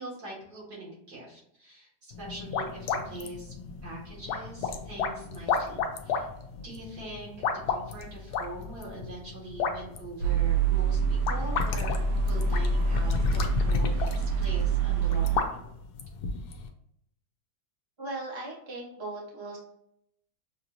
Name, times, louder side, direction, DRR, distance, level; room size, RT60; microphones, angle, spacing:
voice 1, 0.0-3.5 3.8-6.3 6.6-15.7, right 1 dB, 70° right, -5 dB, 2.3 m, -42 dB
sound 1, 2.1-16.7, left 5 dB, 75° left, 1.1 m, -33 dB
sound 2, 10.2-15.4, right 4 dB, 90° right, 1.4 m, -26 dB
voice 2, 18.0-19.6, right 2 dB, 20° right, -3 dB, 0.9 m, -38 dB
6.3 x 2.6 x 2.9 m, 0.74 s
omnidirectional pair, 1.8 m